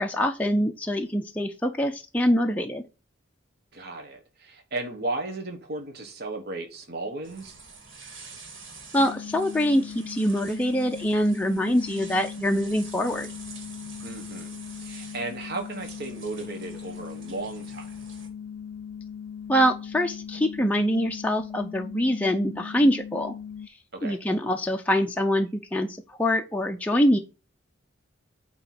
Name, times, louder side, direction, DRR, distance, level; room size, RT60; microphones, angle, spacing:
voice 1, 0.0-2.8 8.9-13.3 19.5-23.4 23.7-27.2, equal, 10° left, 0.4 m, -24 dB
voice 2, 3.7-7.5 14.0-17.9 23.9-24.2, right 2 dB, 55° right, 1.2 m, -35 dB
sound 1, 7.2-18.3, right 4 dB, 70° right, 2.0 m, -47 dB
sound 2, 9.0-23.7, left 7 dB, 85° left, 0.4 m, -39 dB
8.8 x 3.0 x 5.8 m
head